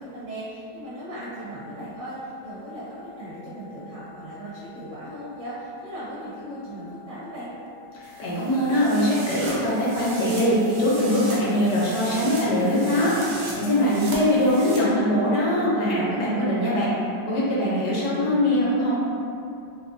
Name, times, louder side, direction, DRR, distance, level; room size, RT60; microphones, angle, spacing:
voice 1, 0.0-7.5 13.8-14.8, right 1 dB, 60° right, -9 dB, 0.9 m, -37 dB
sound 1, 1.4-16.7, left 7 dB, 85° left, 1.4 m, -48 dB
voice 2, 7.9-13.1 13.5-16.9 17.3-19.0, equal, 70° left, -7 dB, 1.3 m, -22 dB
sound 2, 8.0-14.8, right 2 dB, 80° right, 1.4 m, -38 dB
3.6 x 2.9 x 2.6 m, 2.6 s
omnidirectional pair, 2.0 m